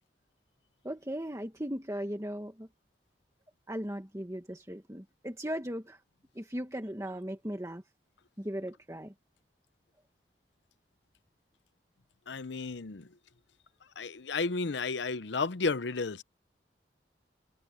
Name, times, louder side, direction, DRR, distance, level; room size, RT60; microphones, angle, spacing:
voice 1, 0.8-2.7 3.7-6.0 6.4-7.8 8.4-9.1, equal, 15° right, 1.7 m, -37 dB
voice 2, 12.3-13.1 14.0-16.2, left 4 dB, 80° left, 0.7 m, -32 dB
head